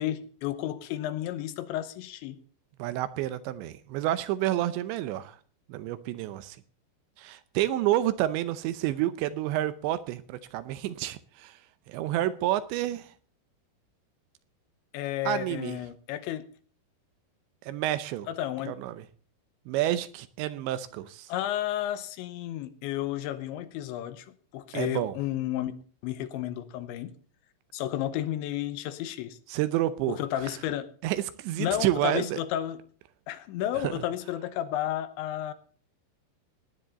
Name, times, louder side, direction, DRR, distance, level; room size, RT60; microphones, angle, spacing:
voice 1, 0.0-2.4 14.9-16.5 18.3-18.7 21.3-24.3 24.5-25.7 26.0-27.1 27.7-29.4 30.1-30.9 31.6-32.8 33.3-35.5, left 12 dB, 80° left, 3.2 m, -32 dB
voice 2, 2.8-5.4 5.7-6.6 7.2-11.6 11.9-13.1 15.3-15.8 17.6-18.3 18.7-19.0 19.7-21.3 24.7-25.1 29.5-30.2 31.0-32.4 33.8-33.9, right 13 dB, 80° right, 3.0 m, -29 dB
18.0 x 10.0 x 4.1 m
omnidirectional pair, 5.3 m